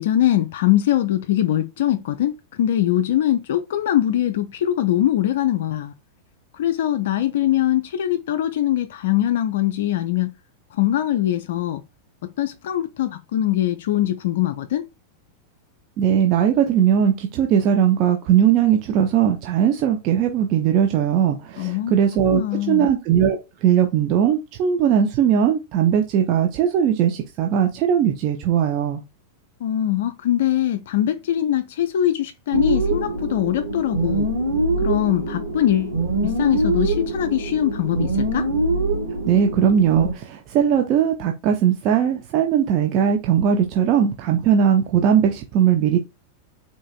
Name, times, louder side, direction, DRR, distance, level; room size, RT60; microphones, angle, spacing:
voice 1, 0.0-2.3 2.6-5.9 6.5-10.3 10.8-11.8 12.4-14.8 21.6-21.9 22.3-22.9 29.6-34.3 34.8-36.0 36.2-38.5, left 12 dB, 55° left, 0.3 m, -22 dB
voice 2, 16.0-29.0 39.3-46.0, right 9 dB, 40° right, 0.5 m, -19 dB
sound 1, 32.5-40.1, right 2 dB, 80° right, 1.0 m, -24 dB
3.9 x 2.4 x 2.4 m
figure-of-eight pair, 90°, 0 cm